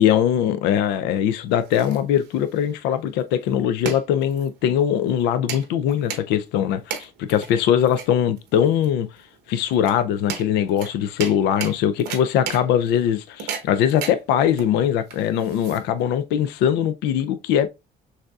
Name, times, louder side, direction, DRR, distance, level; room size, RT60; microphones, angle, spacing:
voice 1, 0.0-9.1 9.5-17.7, left 9 dB, 90° left, 0.4 m, -21 dB
sound 1, 1.3-16.2, right 7 dB, 85° right, 0.9 m, -36 dB
6.4 x 2.6 x 2.3 m
cardioid pair, 110°, 17 cm